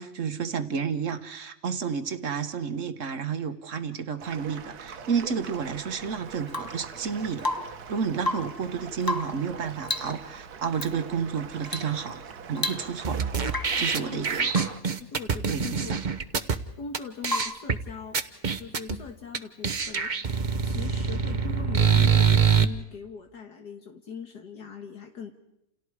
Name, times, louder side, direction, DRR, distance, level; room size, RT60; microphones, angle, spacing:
voice 1, 0.0-7.5 7.9-12.2 12.5-13.2 13.8-14.5 15.5-16.0, right 6 dB, 50° right, 10 dB, 1.5 m, -31 dB
sound 1, 4.2-14.8, right 6 dB, 65° right, 1.6 m, -42 dB
Rain / Water tap faucet / Drip, 6.5-6.9 7.4-7.9 8.2-8.6 9.0-9.5 9.8-10.2 10.7-10.9 11.7-12.0 12.2-12.3 12.6-13.1 13.5-13.9 14.5-14.8 17.3-17.7 19.6-19.7, left 2 dB, 15° left, 1.1 m, -32 dB
sound 2, 13.0-16.6 16.9-17.0 17.2-17.8 18.1-19.0 19.3-19.4 19.6-22.6, right 6 dB, 35° right, 0.9 m, -24 dB
voice 2, 13.8-16.0 16.8-18.2 18.5-20.4 20.6-25.3, left 6 dB, 70° left, 4 dB, 2.1 m, -41 dB
29.0 x 29.0 x 4.8 m, 0.85 s
omnidirectional pair, 1.8 m